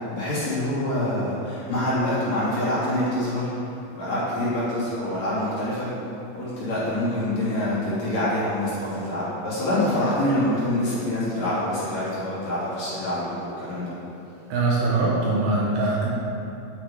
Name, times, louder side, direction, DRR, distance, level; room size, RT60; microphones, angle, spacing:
voice 1, 0.1-3.5 3.9-5.9 6.3-13.9, left 1 dB, 40° left, -11 dB, 3.5 m, -26 dB
voice 2, 14.5-16.1, right 3 dB, 70° right, -4 dB, 3.0 m, -22 dB
10.0 x 9.0 x 4.8 m, 2.7 s
omnidirectional pair, 5.4 m